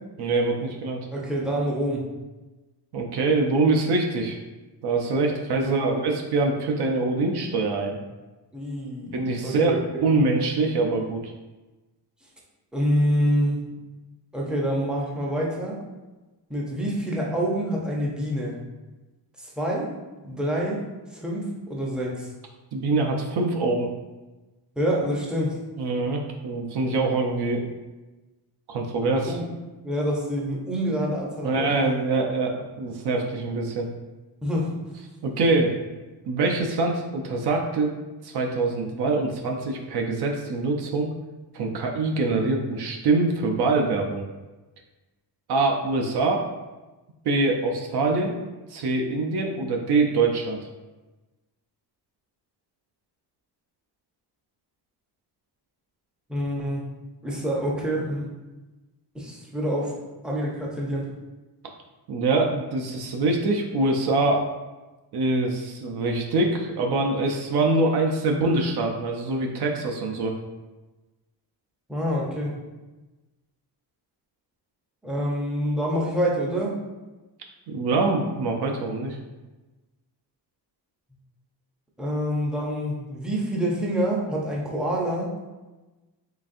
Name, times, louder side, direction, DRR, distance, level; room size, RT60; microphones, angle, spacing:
voice 1, 0.2-1.1 2.9-4.4 4.8-8.0 9.1-11.3 22.7-23.9 25.8-27.6 28.7-29.4 31.4-33.9 35.2-35.7 36.3-37.9 38.2-41.1 41.5-44.3 45.5-46.4 47.2-48.4 48.7-50.6 62.1-64.4 65.1-70.3 77.7-79.2, right 3 dB, 65° right, 1 dB, 0.5 m, -24 dB
voice 2, 1.1-2.1 5.2-5.4 5.6-6.0 8.5-9.8 12.7-13.6 14.3-15.8 16.5-18.6 19.4-19.9 20.2-20.8 21.1-22.3 24.8-25.6 29.3-29.5 29.8-31.9 34.4-34.7 56.3-56.9 57.2-58.3 59.1-60.0 60.2-61.1 71.9-72.6 75.0-76.8 82.0-85.3, equal, ahead, -4 dB, 0.5 m, -27 dB
3.9 x 3.3 x 2.5 m, 1.1 s
wide cardioid pair, 180°, 42 cm